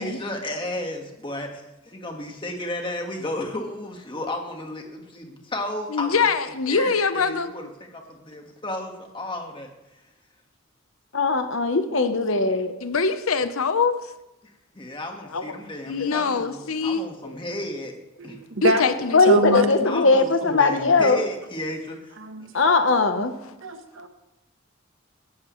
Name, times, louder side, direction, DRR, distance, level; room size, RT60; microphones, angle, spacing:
voice 1, 0.0-6.2 6.7-9.7 14.8-17.9 18.2-18.4 19.8-22.1, left 1 dB, 25° left, 3 dB, 1.6 m, -33 dB
voice 2, 5.9-7.5 12.8-14.0 15.3-15.6 15.9-17.3 18.6-20.6, left 5 dB, 90° left, 11 dB, 0.8 m, -24 dB
voice 3, 11.1-12.7 19.1-21.2 22.5-23.3, left 3 dB, 65° left, 8 dB, 1.0 m, -19 dB
voice 4, 18.2-18.8 19.3-19.7 22.2-22.5 23.6-24.1, right 1 dB, 65° right, 7 dB, 1.2 m, -25 dB
16.5 x 12.5 x 3.2 m, 0.94 s
head